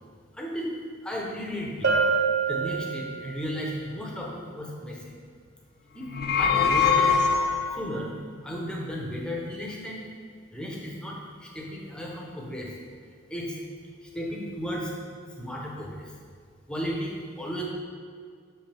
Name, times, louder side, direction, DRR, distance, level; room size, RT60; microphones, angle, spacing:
voice 1, 0.3-1.9 2.5-5.1 5.9-7.2 7.7-8.2 8.4-10.0 10.5-12.7 13.3-13.6 14.0-14.9 15.4-16.1 16.7-17.6, equal, 5° left, -3 dB, 0.9 m, -34 dB
Bell, 1.8-3.4, right 5 dB, 65° right, 0.8 m, -25 dB
sound 1, 6.0-7.9, left 5 dB, 50° left, 0.5 m, -23 dB
6.6 x 5.6 x 3.5 m, 2.1 s
head